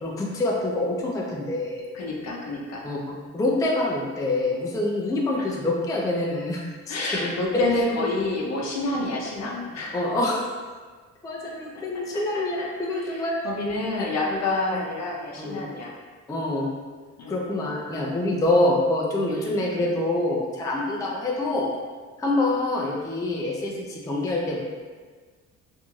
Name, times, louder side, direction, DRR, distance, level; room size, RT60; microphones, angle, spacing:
voice 1, 0.0-1.8 2.8-3.0 3.3-7.3 9.9-10.6 11.2-13.3 15.4-15.6 16.3-16.7 17.3-21.7 22.2-24.6, left 2 dB, 10° left, -3 dB, 0.4 m, -26 dB
voice 2, 1.9-2.8 5.4-5.5 6.9-10.0 11.7-15.9 17.2-17.4 19.3-19.8 21.0-21.1, left 2 dB, 60° left, -2 dB, 0.7 m, -29 dB
3.0 x 2.6 x 2.3 m, 1.5 s
cardioid pair, 90°, 30 cm